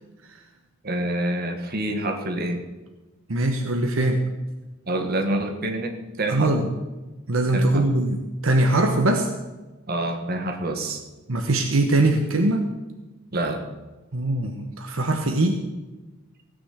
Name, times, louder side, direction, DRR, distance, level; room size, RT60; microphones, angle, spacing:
voice 1, 0.8-2.6 4.9-6.6 7.5-7.9 9.1-9.2 9.9-11.0 13.3-13.6, right 1 dB, 50° right, 4 dB, 1.7 m, -27 dB
voice 2, 3.3-4.2 6.3-6.7 7.3-9.3 11.3-12.7 14.1-15.6, right 2 dB, 70° right, 4 dB, 1.1 m, -22 dB
16.5 x 6.2 x 8.0 m, 1.2 s
head